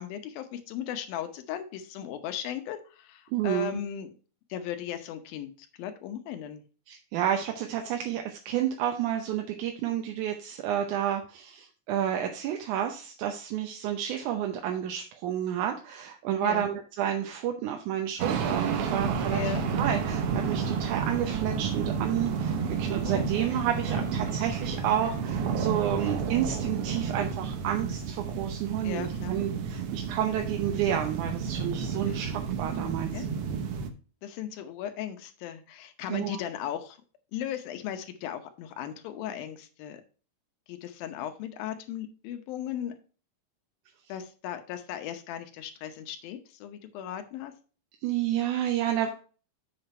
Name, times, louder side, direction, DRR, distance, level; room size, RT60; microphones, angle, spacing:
voice 1, 0.0-4.1 4.5-5.5 5.8-6.6 16.4-16.7 19.3-19.7 23.1-23.2 23.9-24.0 28.8-29.4 32.0-32.2 33.1-33.3 34.2-37.0 37.3-40.0 40.7-43.0 44.1-47.5, left 10 dB, 85° left, 7 dB, 2.8 m, -37 dB
voice 2, 3.3-3.8 6.9-33.2 36.1-36.4 48.0-49.1, right 10 dB, 75° right, 4 dB, 2.0 m, -30 dB
sound 1, 18.2-33.9, right 6 dB, 90° right, 1.2 m, -31 dB
7.7 x 5.9 x 4.3 m, 0.37 s
omnidirectional pair, 4.1 m